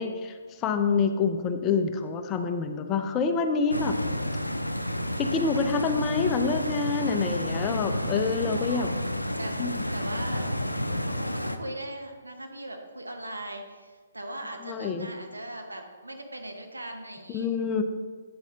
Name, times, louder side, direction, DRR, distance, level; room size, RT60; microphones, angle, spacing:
voice 1, 0.0-4.0 5.2-8.9 9.6-9.8 14.6-15.1 17.3-17.8, left 5 dB, 20° left, 7 dB, 0.5 m, -27 dB
Stream, 3.7-11.6, left 1 dB, 90° left, 0.5 m, -30 dB
voice 2, 7.0-8.0 8.5-9.1 9.4-10.5 10.8-17.5, right 1 dB, 80° right, 3 dB, 1.1 m, -40 dB
8.6 x 7.2 x 2.8 m, 1.5 s
figure-of-eight pair, 130°, 0 cm